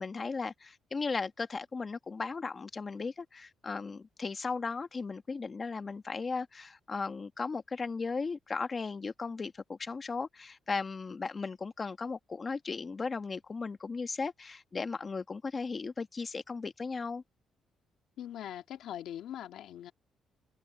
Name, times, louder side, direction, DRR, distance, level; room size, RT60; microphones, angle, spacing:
voice 1, 0.0-17.2, left 4 dB, 35° left, 1.3 m, -36 dB
voice 2, 18.2-19.9, left 11 dB, 80° left, 2.5 m, -41 dB
cardioid pair, 90°, 0 cm